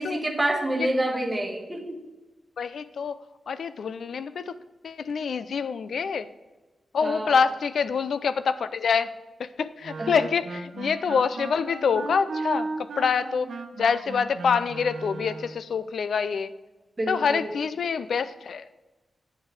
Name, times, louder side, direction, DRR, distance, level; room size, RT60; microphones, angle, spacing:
voice 1, 0.0-2.0 7.0-7.4 10.0-10.1 17.0-17.5, right 1 dB, 20° right, 2 dB, 1.3 m, -28 dB
voice 2, 2.6-3.2 3.5-4.5 4.8-6.3 6.9-9.1 9.4-13.5 13.8-16.5 17.1-18.7, left 6 dB, 75° left, 13 dB, 0.4 m, -26 dB
Wind instrument woodwind instrument, 9.8-15.6, right 3 dB, 90° right, 0.9 m, -35 dB
8.8 x 5.5 x 4.8 m, 1.1 s
wide cardioid pair, 145°, 0 cm